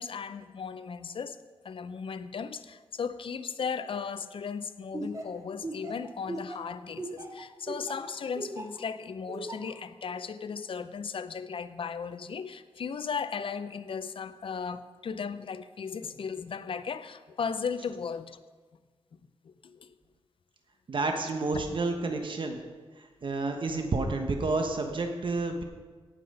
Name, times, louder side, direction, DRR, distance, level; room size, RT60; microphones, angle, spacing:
voice 1, 0.0-1.4 1.6-18.4 19.4-19.9 23.5-23.6, left 6 dB, 60° left, 12 dB, 0.6 m, -36 dB
Laughter, 4.9-8.8 9.3-9.7, right 2 dB, 35° right, 1.7 m, -38 dB
voice 2, 20.9-22.6 23.2-25.6, right 3 dB, 55° right, 4 dB, 1.2 m, -30 dB
17.0 x 5.8 x 5.5 m, 1.4 s
wide cardioid pair, 85°, 10 cm